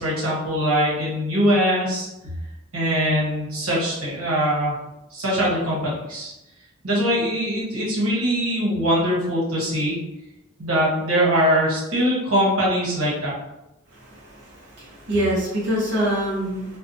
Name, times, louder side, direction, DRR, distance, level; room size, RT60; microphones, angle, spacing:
voice 1, 0.0-2.1 2.7-4.8 5.1-6.3 6.8-10.0 10.6-13.3, equal, 85° right, -6 dB, 1.0 m, -22 dB
voice 2, 13.9-16.8, equal, 55° right, -8 dB, 0.7 m, -25 dB
2.7 x 2.1 x 2.6 m, 0.93 s
head